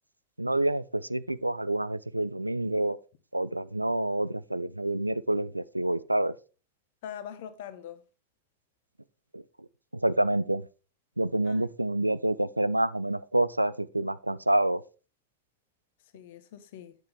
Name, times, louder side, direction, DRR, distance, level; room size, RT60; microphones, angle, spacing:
voice 1, 0.4-3.0 3.3-6.4 9.3-9.4 10.0-10.6 11.2-14.8, right 1 dB, 85° right, 0.4 m, -27 dB
voice 2, 7.0-8.0 11.4-11.6 16.1-17.0, left 9 dB, 55° left, 1.2 m, -42 dB
9.3 x 7.6 x 3.5 m
figure-of-eight pair, 90°, 0 cm